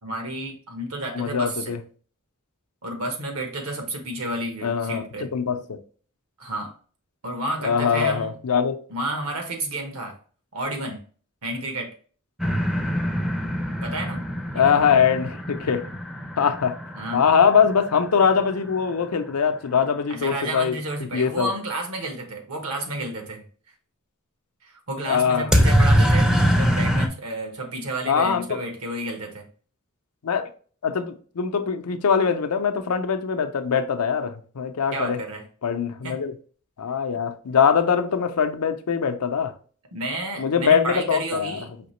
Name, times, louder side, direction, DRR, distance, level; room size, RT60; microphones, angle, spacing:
voice 1, 0.0-1.7 2.8-5.3 6.4-6.7 7.2-8.4 8.9-10.2 10.5-11.0 11.4-11.9 13.8-14.2 14.5-14.8 16.9-17.2 20.1-23.5 24.6-29.5 34.9-35.4 36.0-36.2 39.9-41.7, right 1 dB, 70° right, 1.2 m, -31 dB
voice 2, 1.1-1.8 4.6-5.0 5.3-5.8 7.6-8.8 14.5-15.8 16.4-16.8 17.1-20.8 21.1-21.5 25.1-25.6 28.1-28.6 30.2-30.5 30.8-35.2 35.6-36.3 36.8-39.5 40.4-41.6, left 6 dB, 90° left, 0.6 m, -22 dB
sound 1, 12.4-18.2 25.5-27.1, equal, 5° right, 0.4 m, -23 dB
5.0 x 2.8 x 3.1 m
head